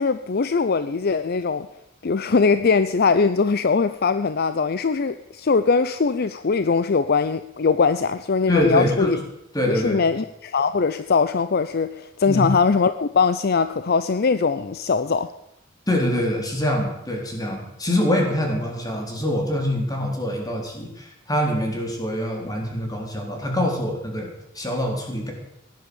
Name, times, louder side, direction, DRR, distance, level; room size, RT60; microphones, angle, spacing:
voice 1, 0.0-1.7 2.0-9.2 9.7-15.3, left 5 dB, 50° left, 0.5 m, -21 dB
voice 2, 8.5-9.2 9.5-10.0 12.3-12.5 15.9-25.3, left 1 dB, 20° left, 3.9 m, -24 dB
17.0 x 10.5 x 7.1 m
head